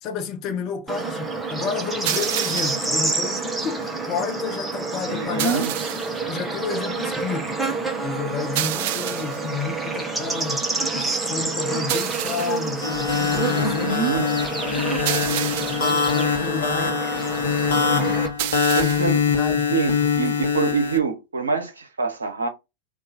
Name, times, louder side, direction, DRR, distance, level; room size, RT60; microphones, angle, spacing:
voice 1, 0.0-5.7 6.3-7.7 8.0-10.7 10.9-14.0 14.6-17.0 17.7-18.2 18.7-19.7 20.0-20.3, left 6 dB, 35° left, 0.8 m, -31 dB
Bird / Insect, 0.9-18.3, right 3 dB, 10° right, 1.0 m, -28 dB
sound 1, 2.1-3.0 5.4-6.2 8.6-9.5 11.9-12.7 15.1-16.0 18.4-19.2, right 13 dB, 50° right, 0.3 m, -29 dB
voice 2, 5.1-5.7 13.5-14.3 17.6-17.7 18.7-19.2 19.7-22.5, right 5 dB, 75° right, 0.8 m, -25 dB
sound 2, 12.8-21.0, left 5 dB, 65° left, 1.0 m, -23 dB
3.8 x 2.6 x 4.1 m
figure-of-eight pair, 90°, 0 cm